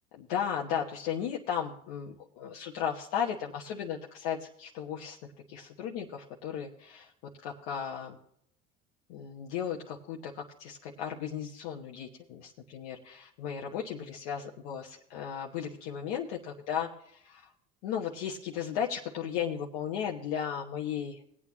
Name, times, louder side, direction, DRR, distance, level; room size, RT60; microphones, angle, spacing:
voice 1, 0.1-5.2 5.5-8.2 9.1-17.5 17.8-21.2, left 8 dB, 80° left, -1 dB, 1.1 m, -35 dB
18.5 x 8.6 x 2.9 m, 0.70 s
hypercardioid pair, 80°, 29 cm